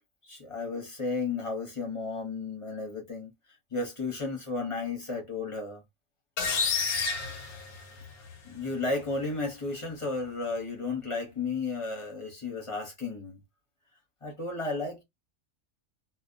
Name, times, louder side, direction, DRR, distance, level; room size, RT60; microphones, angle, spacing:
voice 1, 0.2-3.3 3.7-5.8 8.4-13.4 14.2-15.0, left 3 dB, 25° left, 0.8 m, -33 dB
sound 1, 6.4-8.3, left 5 dB, 80° left, 1.3 m, -30 dB
2.6 x 2.1 x 2.5 m
omnidirectional pair, 1.6 m